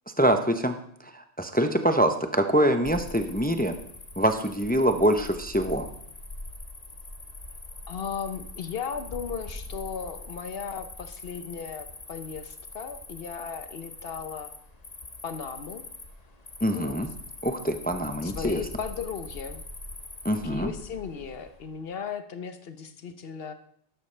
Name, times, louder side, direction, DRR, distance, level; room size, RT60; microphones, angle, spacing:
voice 1, 0.2-0.8 1.1-3.7 4.2-5.9 16.6-17.1 17.4-18.6 20.2-20.7, right 1 dB, 10° left, 7 dB, 0.4 m, -24 dB
Cricket, 2.8-21.8, left 2 dB, 35° left, 1.2 m, -43 dB
voice 2, 7.9-14.5 15.2-15.8 16.7-17.1 18.2-19.6 20.3-23.5, left 6 dB, 55° left, 9 dB, 1.0 m, -36 dB
12.5 x 11.5 x 3.3 m, 0.68 s
omnidirectional pair, 1.3 m